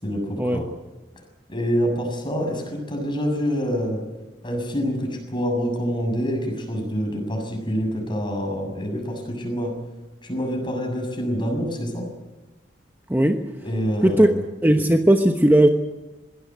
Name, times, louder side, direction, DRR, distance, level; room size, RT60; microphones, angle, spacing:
voice 1, 0.0-0.7 1.5-4.0 4.4-9.7 10.2-12.1 13.6-14.4, equal, 25° left, 3 dB, 7.0 m, -26 dB
voice 2, 13.1-13.5 14.0-14.3 14.6-15.7, right 1 dB, 10° right, 5 dB, 1.1 m, -17 dB
22.0 x 17.0 x 9.4 m, 1.1 s
head